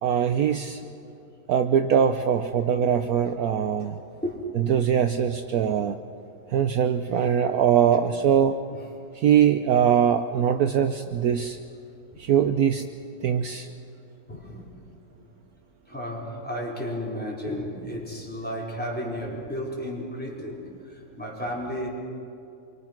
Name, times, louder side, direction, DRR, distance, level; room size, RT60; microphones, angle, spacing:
voice 1, 0.0-0.8 1.5-4.0 4.7-6.0 6.5-8.6 9.1-11.6 12.2-12.9 13.2-13.7, right 8 dB, 65° right, 8 dB, 1.1 m, -22 dB
voice 2, 0.5-0.9 4.2-4.4 7.2-7.3 8.7-8.8 12.1-12.3 13.2-13.3 14.3-14.7 15.1-15.3 15.9-21.9, equal, 5° left, -4 dB, 4.4 m, -34 dB
26.5 x 24.0 x 6.0 m, 2.6 s
omnidirectional pair, 1.8 m